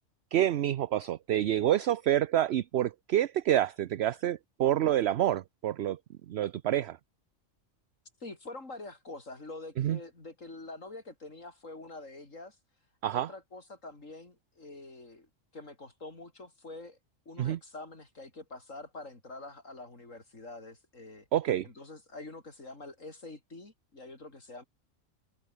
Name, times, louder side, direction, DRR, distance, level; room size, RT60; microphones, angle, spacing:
voice 1, 0.3-6.0 6.3-7.0 9.8-10.0 13.0-13.3 17.4-17.6 21.3-21.7, right 12 dB, 60° right, 0.8 m, -27 dB
voice 2, 8.2-12.6 13.1-17.0 17.3-21.3 21.6-24.6, left 2 dB, 75° left, 5.3 m, -46 dB
omnidirectional pair, 1.3 m